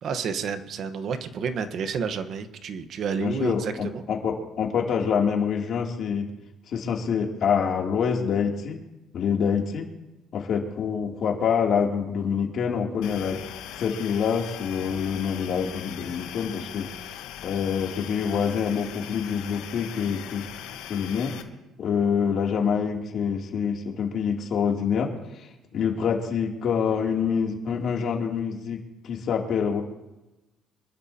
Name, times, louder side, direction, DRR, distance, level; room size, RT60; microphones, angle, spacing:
voice 1, 0.0-4.0, right 6 dB, 60° right, 9 dB, 1.2 m, -30 dB
voice 2, 3.2-6.3 6.7-8.8 9.1-9.9 10.3-16.9 17.4-20.4 20.9-21.3 21.8-29.8, left 7 dB, 55° left, 0 dB, 2.9 m, -26 dB
sound 1, 13.0-21.4, left 10 dB, 85° left, 1.3 m, -40 dB
26.0 x 12.5 x 2.9 m, 1.0 s
cardioid pair, 95°, 0 cm